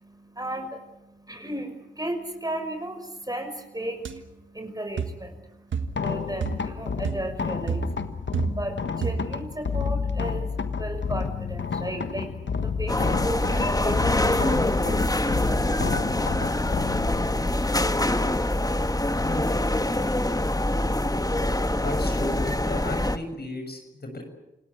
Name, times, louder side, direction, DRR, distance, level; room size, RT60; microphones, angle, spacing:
voice 1, 0.0-16.9, right 1 dB, 20° right, 7 dB, 5.7 m, -36 dB
sound 1, 4.0-4.2 5.0-5.2 5.7-6.1 6.4-6.7 7.0-7.3 7.7-8.8 9.0-9.4, right 5 dB, 90° right, 1.5 m, -30 dB
sound 2, 5.8-20.1, left 5 dB, 75° left, 1.5 m, -31 dB
sound 3, 12.9-23.2, left 1 dB, 20° left, 1.6 m, -25 dB
voice 2, 19.2-19.6 21.8-24.2, left 1 dB, 55° left, 5 dB, 6.7 m, -35 dB
29.0 x 17.5 x 8.6 m, 0.94 s
cardioid pair, 40°, 19 cm